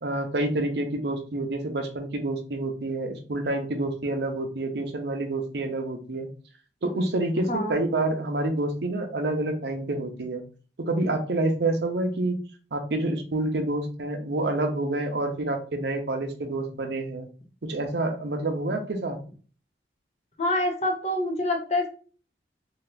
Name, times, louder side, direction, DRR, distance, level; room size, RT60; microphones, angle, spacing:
voice 1, 0.0-6.3 6.8-10.4 10.8-12.4 12.7-17.3 17.6-19.2, right 2 dB, 70° right, 5 dB, 0.6 m, -28 dB
voice 2, 20.4-21.9, left 1 dB, 35° left, 3 dB, 0.6 m, -26 dB
2.8 x 2.3 x 3.3 m, 0.39 s
head